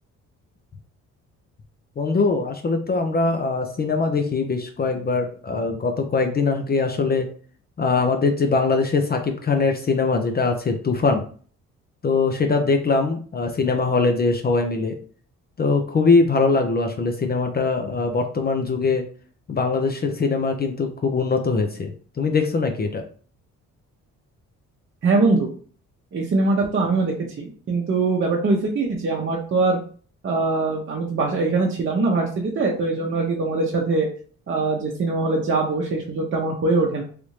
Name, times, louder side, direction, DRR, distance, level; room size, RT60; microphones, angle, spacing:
voice 1, 2.0-7.3 7.8-11.2 12.0-14.9 15.6-19.0 19.5-23.0, left 4 dB, 30° left, 5 dB, 0.5 m, -22 dB
voice 2, 25.0-25.5 26.1-29.8 30.2-34.1 34.5-37.0, right 3 dB, 40° right, -1 dB, 0.8 m, -22 dB
3.3 x 2.6 x 3.1 m, 0.44 s
cardioid pair, 90°, 30 cm